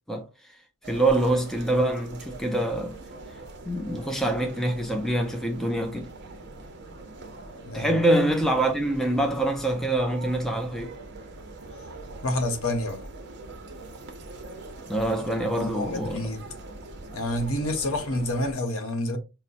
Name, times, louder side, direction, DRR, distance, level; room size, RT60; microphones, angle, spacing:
sound 1, 0.8-18.5, right 2 dB, 50° right, 0.7 m, -43 dB
voice 1, 0.9-3.0 3.7-6.1 7.7-10.9 14.9-16.3, right 1 dB, ahead, 0.4 m, -25 dB
voice 2, 7.6-7.9 12.2-13.0 15.5-16.5 17.1-19.2, left 1 dB, 65° left, 0.9 m, -28 dB
5.4 x 2.0 x 2.5 m
head